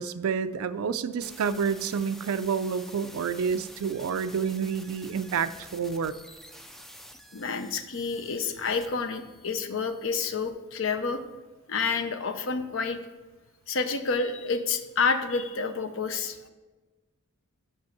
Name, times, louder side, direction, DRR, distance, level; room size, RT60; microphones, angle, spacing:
voice 1, 0.0-6.1, right 6 dB, 80° right, 12 dB, 0.4 m, -29 dB
sound 1, 1.2-10.5, equal, ahead, 0.3 m, -49 dB
voice 2, 7.3-11.2 11.7-13.0 13.7-16.4, left 4 dB, 65° left, 9 dB, 0.7 m, -29 dB
6.1 x 5.3 x 6.7 m, 1.2 s
head